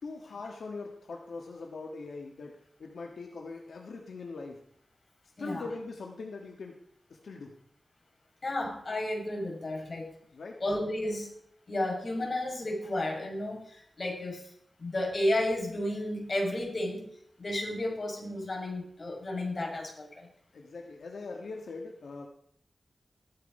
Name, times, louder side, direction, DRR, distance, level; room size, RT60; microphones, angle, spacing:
voice 1, 0.0-4.6 5.4-6.7 7.1-7.5 10.3-10.6 20.5-22.3, left 3 dB, 85° left, 1 dB, 1.7 m, -41 dB
voice 2, 8.4-10.1 10.6-11.3 11.7-14.5 14.8-17.1 17.4-20.3, left 1 dB, 45° left, 0 dB, 5.9 m, -32 dB
15.5 x 12.5 x 5.5 m, 0.66 s
wide cardioid pair, 80°, 0 cm